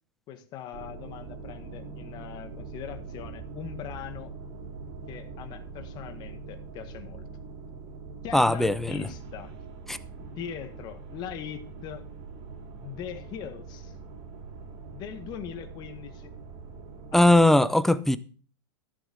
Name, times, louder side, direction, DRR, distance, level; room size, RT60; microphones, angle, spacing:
voice 1, 0.3-4.3 5.1-7.3 8.2-9.5 10.2-12.1 12.8-14.0 14.9-16.3 17.1-17.3, left 9 dB, 35° left, 1.7 m, -40 dB
sound 1, 0.7-17.5, right 4 dB, 40° right, 3.3 m, -43 dB
voice 2, 8.3-9.0 9.9-10.0 17.1-18.2, left 1 dB, ahead, 0.5 m, -20 dB
14.5 x 6.9 x 6.5 m
hypercardioid pair, 140°, 13 cm